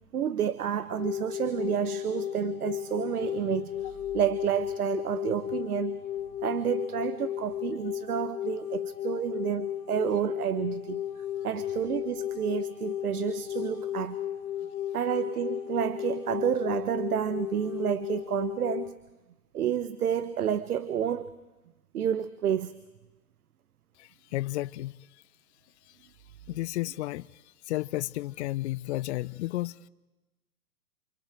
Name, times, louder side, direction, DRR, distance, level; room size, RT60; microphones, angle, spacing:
voice 1, 0.1-6.0 6.4-14.2 14.9-19.0 19.5-21.3 21.9-22.7, right 9 dB, 80° right, 1.3 m, -30 dB
sound 1, 0.9-18.9, left 11 dB, 70° left, 2.4 m, -34 dB
voice 2, 24.0-25.0 26.5-27.3 27.7-29.8, left 17 dB, 50° left, 0.8 m, -32 dB
29.0 x 28.0 x 4.6 m
hypercardioid pair, 125°, 44 cm